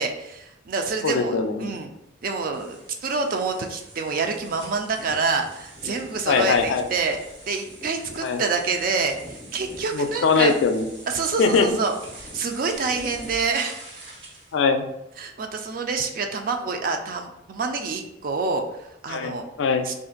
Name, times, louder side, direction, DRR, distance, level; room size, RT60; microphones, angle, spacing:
voice 1, 0.0-1.9 2.2-7.2 7.5-10.5 11.1-11.9 12.2-13.8 15.2-19.4 19.8-19.9, right 4 dB, 50° right, 5 dB, 0.4 m, -27 dB
voice 2, 1.0-1.8 6.3-6.9 8.2-8.4 9.9-10.9 11.4-11.7 14.5-14.9 19.1-19.9, left 4 dB, 85° left, 7 dB, 0.4 m, -21 dB
sound 1, 2.5-14.6, right 1 dB, 65° right, 1.2 m, -44 dB
2.5 x 2.5 x 3.8 m, 0.82 s
head